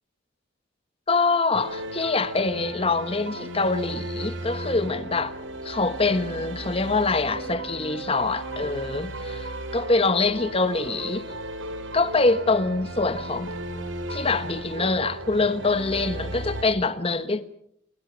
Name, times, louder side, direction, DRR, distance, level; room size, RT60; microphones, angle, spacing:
voice 1, 1.1-5.3 5.6-11.2 11.9-13.5 14.1-17.5, left 3 dB, 30° left, 1.2 m, -24 dB
sound 1, 1.5-16.6, right 1 dB, 75° right, 4.5 m, -35 dB
29.0 x 23.0 x 6.2 m
head